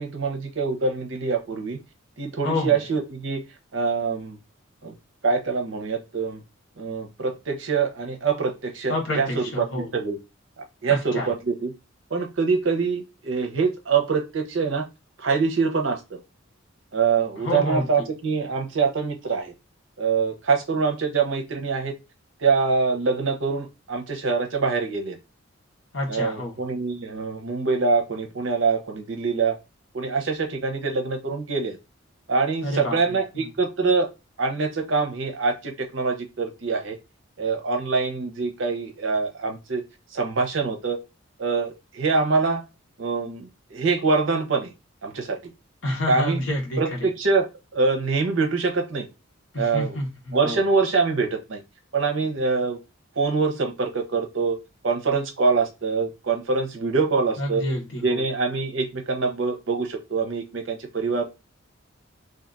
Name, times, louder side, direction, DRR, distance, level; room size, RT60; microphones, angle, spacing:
voice 1, 0.0-1.8 2.2-3.4 3.7-4.4 4.8-5.0 5.2-6.4 6.8-10.2 10.6-11.7 12.1-14.8 15.2-16.2 16.9-19.5 20.0-21.9 22.4-25.2 26.1-29.5 29.9-31.8 32.3-34.1 34.4-37.0 37.4-39.8 40.1-41.0 41.4-42.6 43.0-44.7 45.0-45.4 46.1-46.4 46.8-49.1 49.6-50.0 50.3-51.6 51.9-52.8 53.2-54.6 54.8-57.6 58.0-61.3, right 4 dB, 65° right, 4 dB, 0.7 m, -24 dB
voice 2, 2.4-2.8 8.9-9.9 10.9-11.3 17.4-18.1 25.9-26.5 32.6-33.0 33.3-33.5 45.8-47.1 49.5-50.6 57.4-58.3, left 1 dB, 70° left, 0 dB, 1.1 m, -28 dB
2.6 x 2.4 x 3.8 m, 0.26 s
head